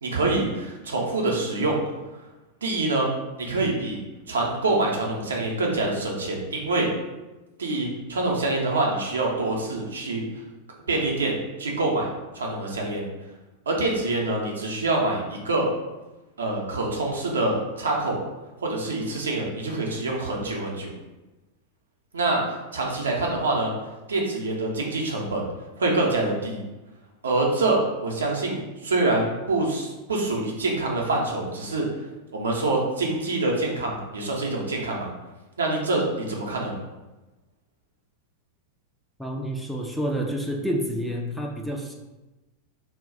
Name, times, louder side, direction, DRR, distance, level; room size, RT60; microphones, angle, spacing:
voice 1, 0.0-1.8 2.6-3.1 3.4-4.0 4.3-6.9 7.6-10.2 10.9-12.1 12.3-13.1 13.7-15.7 16.4-18.2 18.6-20.9 22.1-23.7 24.1-25.4 25.8-26.6 27.2-31.9 32.3-35.1 35.6-36.8, right 2 dB, 70° right, -1 dB, 0.6 m, -25 dB
voice 2, 39.2-41.9, equal, ahead, 0 dB, 0.3 m, -29 dB
2.2 x 2.1 x 3.7 m, 1.1 s
figure-of-eight pair, 90°, 0 cm